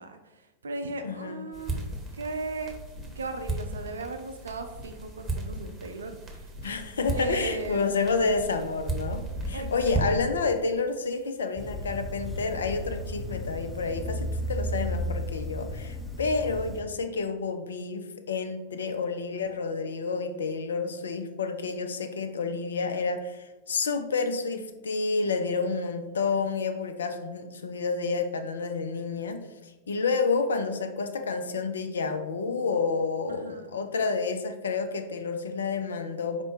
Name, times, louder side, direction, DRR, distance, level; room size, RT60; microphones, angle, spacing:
voice 1, 0.0-2.8 3.2-6.5 7.1-7.8 9.5-9.7 33.3-33.7, right 3 dB, 70° right, 8 dB, 0.4 m, -37 dB
voice 2, 1.0-1.4 6.6-29.4 29.9-36.4, left 4 dB, 70° left, 7 dB, 0.4 m, -29 dB
sound 1, 1.5-10.4, right 2 dB, 20° right, 0.9 m, -35 dB
sound 2, 11.6-16.8, left 1 dB, 5° left, 0.5 m, -34 dB
4.4 x 2.1 x 4.2 m, 1.1 s
figure-of-eight pair, 90°, 0 cm